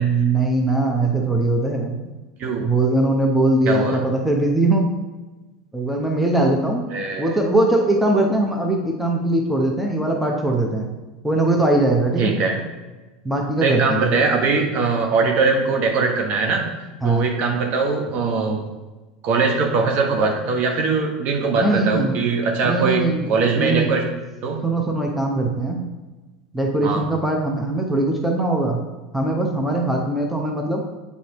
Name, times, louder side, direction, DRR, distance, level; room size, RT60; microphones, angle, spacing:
voice 1, 0.0-1.9 2.6-4.9 5.7-6.8 7.2-10.9 11.2-12.4 13.2-14.1 17.0-17.3 21.6-22.2 22.6-23.3 23.5-23.9 24.6-25.8 26.5-28.8 29.1-30.8, right 2 dB, 5° right, 0 dB, 1.0 m, -20 dB
voice 2, 2.4-2.7 3.7-4.0 6.9-7.3 12.2-12.6 13.6-16.7 17.0-18.7 19.2-24.0 24.4-24.6 26.8-27.0, right 4 dB, 50° right, 2 dB, 1.2 m, -21 dB
7.8 x 4.2 x 3.1 m, 1.2 s
hypercardioid pair, 90°, 3 cm